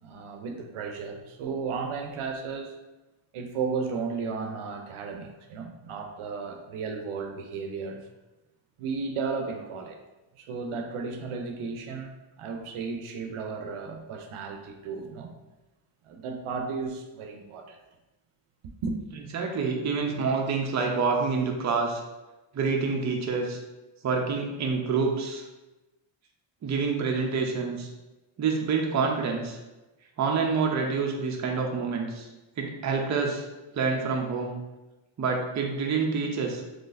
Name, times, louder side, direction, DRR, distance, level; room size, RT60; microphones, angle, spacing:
voice 1, 0.0-2.8 3.3-8.0 8.8-10.0 10.3-15.3 16.0-17.8 18.8-19.0, right 5 dB, 90° right, 4 dB, 0.6 m, -34 dB
voice 2, 19.3-22.0 22.5-23.6 24.0-25.4 26.6-27.9 28.4-29.6 30.2-32.3 32.6-33.5 33.7-34.6 35.2-36.7, right 4 dB, 35° right, 1 dB, 0.5 m, -27 dB
3.9 x 3.1 x 2.5 m, 1.1 s
wide cardioid pair, 170°, 49 cm